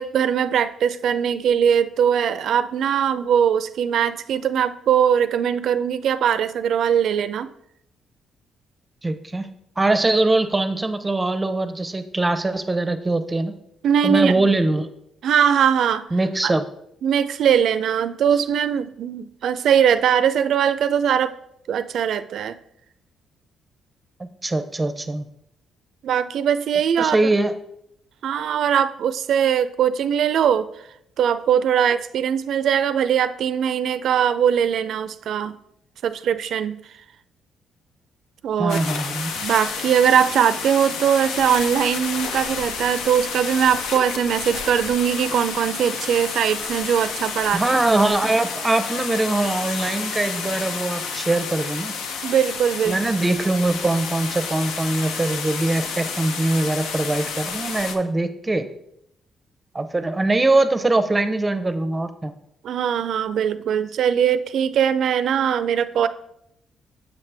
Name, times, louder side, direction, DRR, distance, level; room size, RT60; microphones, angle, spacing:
voice 1, 0.0-7.5 13.8-14.5 15.2-16.1 16.4-16.5 17.0-21.4 21.7-22.6 26.0-27.2 28.2-30.7 31.2-35.5 36.0-36.8 38.4-38.8 39.4-47.6 52.2-53.0 62.6-66.1, right 8 dB, 70° right, 13 dB, 0.4 m, -21 dB
voice 2, 9.0-9.5 9.8-13.5 14.0-14.9 16.1-16.6 24.4-25.3 27.0-27.5 38.6-39.3 47.5-51.9 52.9-58.6 59.7-62.3, right 2 dB, 20° right, 9 dB, 0.6 m, -22 dB
Content warning, 38.7-58.0, left 5 dB, 90° left, 0.6 m, -30 dB
6.9 x 5.8 x 3.4 m, 0.77 s
cardioid pair, 90°, 0 cm